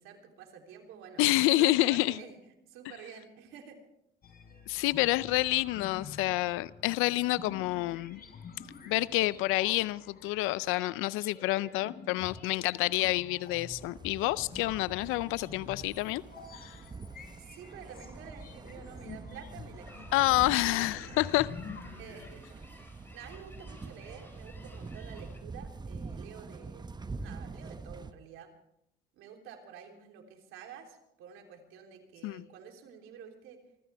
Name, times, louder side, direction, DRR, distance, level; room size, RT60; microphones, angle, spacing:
voice 1, 0.0-1.2 1.5-3.8 17.4-21.3 22.0-26.9 27.2-28.5 29.1-33.6, right 7 dB, 75° right, 3.4 m, -49 dB
voice 2, 1.2-2.2 4.7-8.2 8.9-16.2 16.5-16.8 20.1-21.5 32.2-32.4, left 18 dB, 75° left, 0.5 m, -28 dB
sound 1, 4.2-22.3, left 5 dB, 45° left, 4.9 m, -48 dB
sound 2, 13.7-28.1, right 4 dB, 20° right, 0.9 m, -45 dB
Starlings loudspeaker - Ciampino, 19.8-25.4, left 1 dB, 10° left, 4.4 m, -55 dB
26.0 x 15.0 x 3.4 m
supercardioid pair, 80°, 21 cm